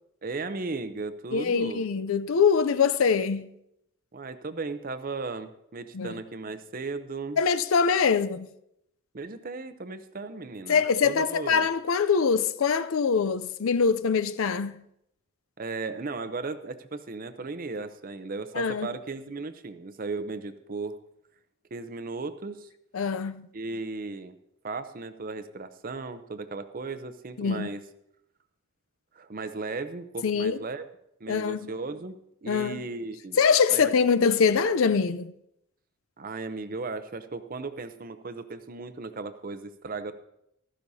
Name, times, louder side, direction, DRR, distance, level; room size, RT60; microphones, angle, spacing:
voice 1, 0.2-1.9 4.1-7.4 9.1-11.7 15.6-21.0 21.7-22.7 23.5-24.3 24.6-27.8 29.1-30.8 31.2-33.4 33.7-33.9 36.2-40.1, right 3 dB, 40° right, 0.6 m, -36 dB
voice 2, 1.3-3.5 5.9-6.1 7.4-8.5 10.7-14.8 18.5-18.9 22.9-23.5 27.4-27.7 30.2-30.6 31.3-31.7 32.5-32.8 33.4-35.3, left 5 dB, 75° left, 0.5 m, -24 dB
15.0 x 13.0 x 2.7 m
head